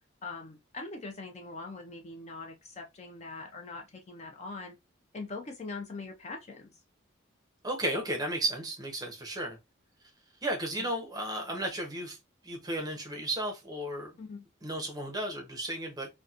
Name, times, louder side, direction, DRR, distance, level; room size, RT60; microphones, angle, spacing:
voice 1, 0.2-4.8 5.1-6.8 14.2-14.5, left 3 dB, 30° left, 0.4 m, -42 dB
voice 2, 7.6-9.6 10.4-12.2 12.4-14.1 14.6-16.1, right 1 dB, 20° right, 0.6 m, -34 dB
2.8 x 2.1 x 2.4 m
head